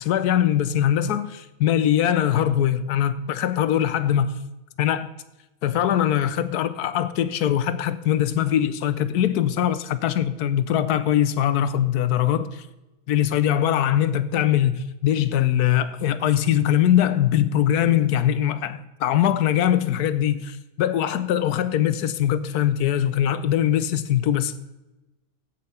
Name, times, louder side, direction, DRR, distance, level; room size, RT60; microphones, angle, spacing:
voice 1, 0.0-4.3 4.8-5.1 5.6-12.7 13.1-24.6, left 10 dB, 90° left, 1.3 m, -22 dB
15.5 x 5.8 x 5.5 m
omnidirectional pair, 1.6 m